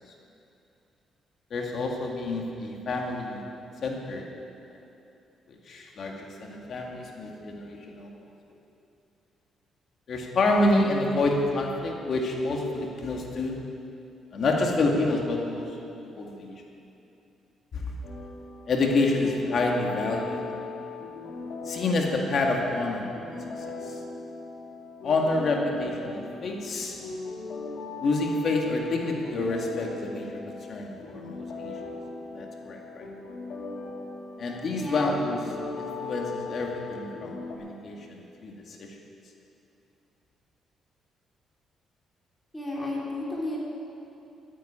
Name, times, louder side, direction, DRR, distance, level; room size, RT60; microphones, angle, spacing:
voice 1, 1.5-3.4 3.8-4.3 5.5-8.1 10.1-13.6 14.3-15.8 16.2-16.5 17.7-18.0 18.7-20.5 21.7-24.0 25.0-27.0 28.0-31.7 32.3-33.0 34.4-35.5 35.8-39.0, left 2 dB, 55° left, 0 dB, 2.1 m, -28 dB
sound 1, 18.0-37.6, left 4 dB, 70° left, 2.9 m, -39 dB
voice 2, 34.8-35.1 42.5-43.6, left 2 dB, 10° left, -5 dB, 3.5 m, -32 dB
13.0 x 9.8 x 8.8 m, 2.7 s
cardioid pair, 90°, 0 cm